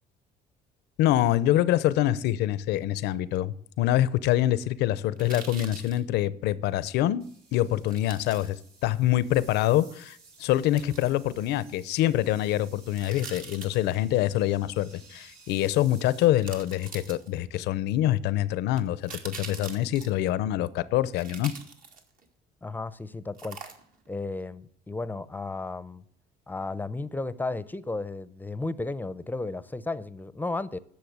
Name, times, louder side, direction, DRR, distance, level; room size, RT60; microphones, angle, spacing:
voice 1, 1.0-8.6 8.8-21.5, left 13 dB, 85° left, 0.7 m, -25 dB
sound 1, 5.2-6.0 7.8-8.5 10.8-11.1 12.9-14.0 15.6-15.7 16.4-17.5 18.7-20.2 21.1-22.3 23.4-24.1 24.4-24.5, right 5 dB, 55° right, 1.9 m, -43 dB
sound 2, 7.2-16.6, right 4 dB, 80° right, 4.8 m, -55 dB
voice 2, 22.6-23.6 24.1-26.0 26.5-30.8, left 2 dB, 10° left, 0.6 m, -34 dB
10.5 x 6.8 x 8.0 m
cardioid pair, 110°, 17 cm